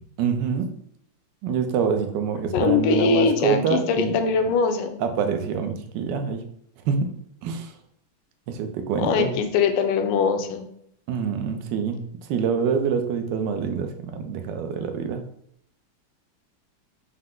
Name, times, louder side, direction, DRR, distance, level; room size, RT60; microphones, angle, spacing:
voice 1, 0.2-0.7 1.4-4.2 5.0-6.4 6.8-7.1 7.4-7.7 8.5-9.3 11.1-15.3, right 6 dB, 75° right, 6 dB, 1.0 m, -26 dB
voice 2, 2.5-5.0 9.0-10.7, left 5 dB, 75° left, 6 dB, 1.1 m, -22 dB
5.5 x 2.1 x 3.7 m, 0.70 s
omnidirectional pair, 2.3 m